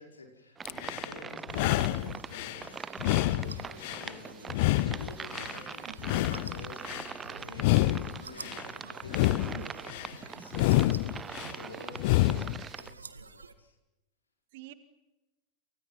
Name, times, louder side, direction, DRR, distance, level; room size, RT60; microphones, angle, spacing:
voice 1, 0.0-13.7, left 2 dB, 75° left, 3 dB, 5.0 m, -49 dB
sound 1, 0.6-12.9, right 6 dB, 20° right, 0.8 m, -43 dB
sound 2, 0.7-1.1 1.5-2.6 3.0-4.1 4.5-5.6 6.0-7.1 7.5-8.6 9.0-10.1 10.5-11.5 12.0-12.6, left 18 dB, 50° left, 0.9 m, -28 dB
sound 3, 1.5-13.5, right 5 dB, 75° right, 1.6 m, -50 dB
voice 2, 9.5-9.9 11.1-11.6 14.5-14.7, right 13 dB, 50° right, 10 dB, 2.1 m, -47 dB
29.5 x 29.0 x 5.7 m, 1.0 s
figure-of-eight pair, 90°, 0 cm